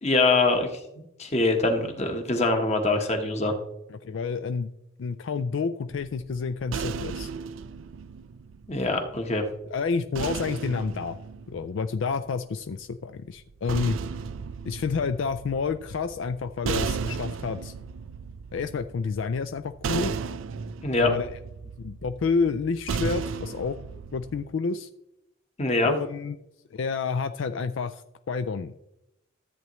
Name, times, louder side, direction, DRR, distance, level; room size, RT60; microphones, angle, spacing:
voice 1, 0.0-3.5 8.7-9.5 20.8-21.1 25.6-25.9, left 2 dB, 30° left, 4 dB, 1.2 m, -24 dB
voice 2, 3.9-4.7 5.0-7.3 9.7-11.2 11.5-14.0 14.7-17.7 18.5-20.1 21.0-21.3 21.8-23.8 24.1-24.9 25.8-26.4 26.7-28.7, left 5 dB, 65° left, 10 dB, 0.4 m, -29 dB
sound 1, 5.9-9.2 10.1-12.4 13.4-24.4, right 5 dB, 70° right, 0.4 m, -35 dB
13.5 x 8.2 x 3.1 m, 0.87 s
head